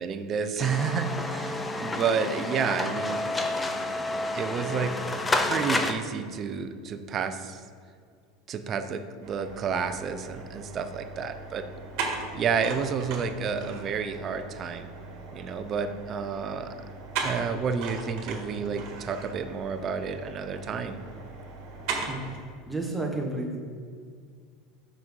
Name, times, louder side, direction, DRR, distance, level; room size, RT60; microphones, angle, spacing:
voice 1, 0.0-3.3 4.3-4.9 5.4-7.6 8.5-11.6 12.3-14.9 15.3-16.7 17.2-21.0, right 6 dB, 35° right, 9 dB, 0.5 m, -30 dB
sound 1, 0.6-5.9, left 2 dB, 15° left, 0.5 m, -29 dB
sound 2, 9.2-22.4, right 4 dB, 60° right, 1.6 m, -38 dB
voice 2, 22.7-23.6, right 2 dB, 5° right, -1 dB, 1.2 m, -31 dB
6.1 x 5.2 x 4.7 m, 2.1 s
supercardioid pair, 125°, 0 cm